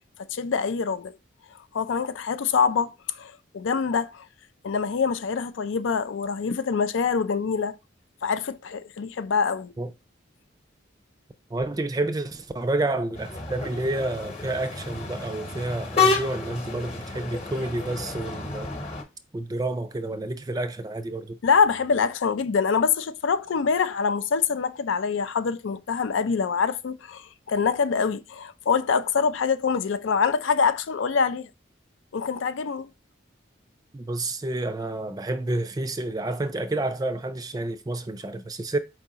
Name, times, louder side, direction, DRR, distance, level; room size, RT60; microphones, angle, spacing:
voice 1, 0.3-1.1 1.7-4.3 4.6-7.8 8.2-9.7 21.4-31.5 32.1-32.9, left 5 dB, 80° left, 0.4 m, -25 dB
voice 2, 11.5-18.7 19.3-21.4 33.9-38.8, right 2 dB, 20° right, 0.4 m, -29 dB
sound 1, 13.1-19.0, left 4 dB, 30° left, 1.0 m, -29 dB
4.7 x 3.5 x 2.8 m
head